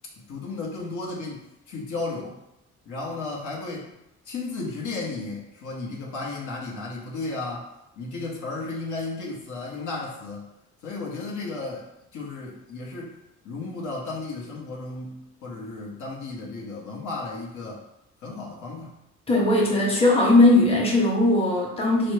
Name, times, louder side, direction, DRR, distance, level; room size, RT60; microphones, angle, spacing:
voice 1, 0.3-2.4 2.9-3.9 4.3-7.7 8.0-10.4 10.8-11.9 12.1-13.2 13.4-17.8 18.2-19.0, left 3 dB, 80° left, -3 dB, 0.8 m, -34 dB
voice 2, 19.3-22.1, left 2 dB, 20° left, -3 dB, 0.8 m, -19 dB
3.3 x 2.0 x 3.1 m, 0.87 s
cardioid pair, 90°, 30 cm